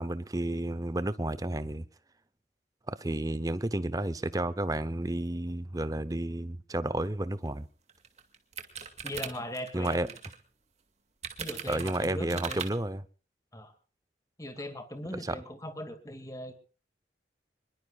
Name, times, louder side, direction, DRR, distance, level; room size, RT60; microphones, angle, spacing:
voice 1, 0.0-1.8 2.9-7.7 9.7-10.1 11.7-13.0 15.3-15.4, right 1 dB, 20° right, 0.7 m, -31 dB
sound 1, 7.5-7.6 7.9-10.4 11.2-12.7, right 6 dB, 40° right, 2.1 m, -39 dB
voice 2, 9.0-10.1 11.4-12.6 13.5-13.7 14.4-16.5, left 1 dB, 20° left, 2.2 m, -39 dB
25.5 x 22.0 x 2.4 m
head